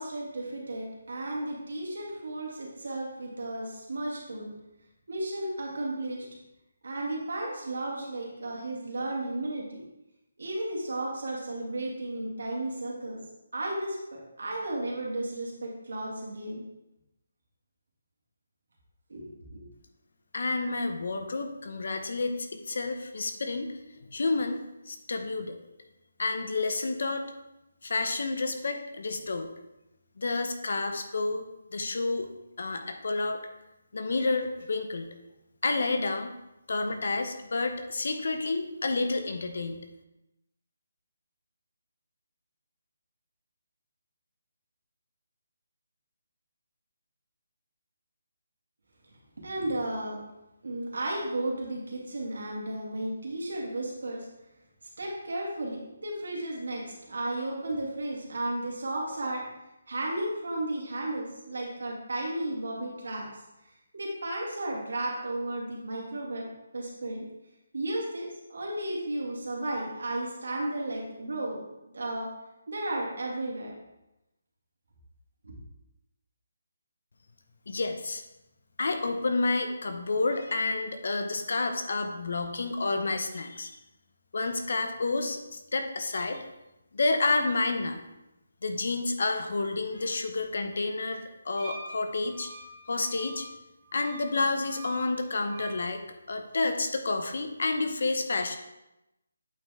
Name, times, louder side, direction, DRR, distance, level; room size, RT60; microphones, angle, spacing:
voice 1, 0.0-4.5 5.1-6.3 6.8-9.8 10.4-13.2 13.5-16.6 19.1-19.6 49.4-50.2 50.6-54.3 55.0-59.4 59.9-63.3 63.9-66.5 66.7-67.3 67.7-71.6 71.9-72.3 72.7-73.7 75.4-75.5, right 1 dB, 80° right, -2 dB, 2.2 m, -34 dB
voice 2, 20.3-24.6 24.9-25.5 26.2-27.2 27.8-29.5 30.2-31.4 31.7-32.3 32.6-33.4 33.9-35.1 35.6-36.3 36.7-39.8 77.7-78.2 78.8-83.7 84.3-86.4 86.9-88.0 88.6-92.5 92.9-93.5 93.9-96.0 96.3-98.6, left 3 dB, 55° left, 6 dB, 0.8 m, -30 dB
Wind instrument woodwind instrument, 91.6-95.8, right 2 dB, 15° right, 1.4 m, -46 dB
8.4 x 4.5 x 3.6 m, 0.94 s
hypercardioid pair, 175°, 0 cm